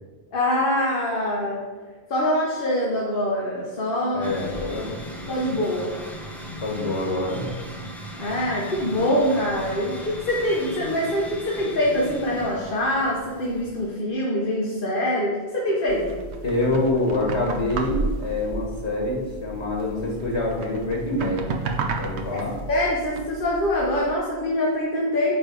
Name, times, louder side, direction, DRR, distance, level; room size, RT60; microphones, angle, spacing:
voice 1, 0.3-1.6 2.1-4.3 5.3-5.9 8.2-16.2 22.7-25.4, left 1 dB, 55° left, -4 dB, 1.2 m, -24 dB
voice 2, 4.1-5.0 6.6-7.5 16.4-21.6 22.0-22.5, left 2 dB, 85° left, -1 dB, 1.8 m, -26 dB
sound 1, 4.2-13.9, equal, ahead, 0.7 m, -38 dB
sound 2, 15.9-24.2, right 3 dB, 85° right, 1.0 m, -33 dB
8.9 x 3.4 x 5.1 m, 1.4 s
omnidirectional pair, 1.1 m